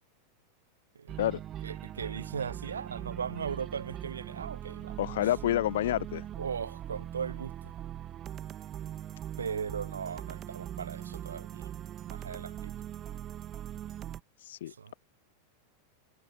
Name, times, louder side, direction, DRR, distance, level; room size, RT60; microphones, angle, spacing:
sound 1, 1.1-14.2, right 11 dB, 30° right, 1.9 m, -41 dB
voice 1, 1.6-5.1 6.4-7.7 9.4-11.7 12.1-12.7 13.1-13.2 14.7-14.9, right 6 dB, 70° right, 0.9 m, -38 dB
voice 2, 5.0-6.2 14.4-14.9, left 13 dB, 60° left, 0.4 m, -29 dB
figure-of-eight pair, 90°, 0 cm